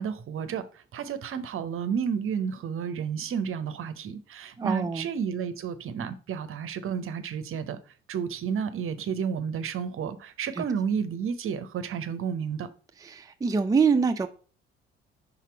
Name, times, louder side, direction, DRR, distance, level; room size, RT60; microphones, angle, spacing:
voice 1, 0.0-7.8 8.1-12.7, right 7 dB, 45° right, 0.8 m, -31 dB
voice 2, 4.6-5.1 10.6-10.7 13.0-14.3, right 5 dB, 10° right, 0.6 m, -25 dB
5.9 x 3.8 x 4.4 m
figure-of-eight pair, 45°, 30 cm